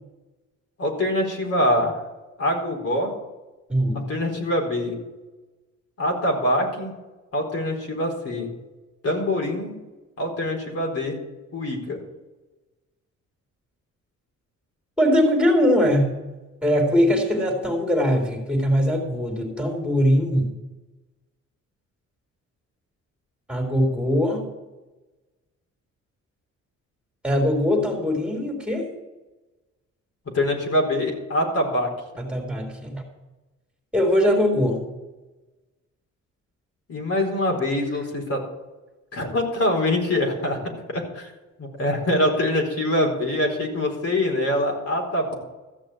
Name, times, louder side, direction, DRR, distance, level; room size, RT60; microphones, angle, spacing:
voice 1, 0.8-1.9 2.4-3.1 3.9-5.0 6.0-6.9 7.3-8.5 9.0-9.8 10.2-11.2 11.5-12.0 30.3-31.9 36.9-38.4 39.1-41.3 41.6-45.3, left 1 dB, 50° left, 1 dB, 4.3 m, -24 dB
voice 2, 3.7-4.0 15.0-16.1 16.6-20.6 23.5-24.4 27.2-28.9 32.2-33.0 33.9-34.8, equal, 5° right, 2 dB, 3.7 m, -21 dB
14.5 x 6.5 x 8.6 m, 1.1 s
cardioid pair, 90°, 30 cm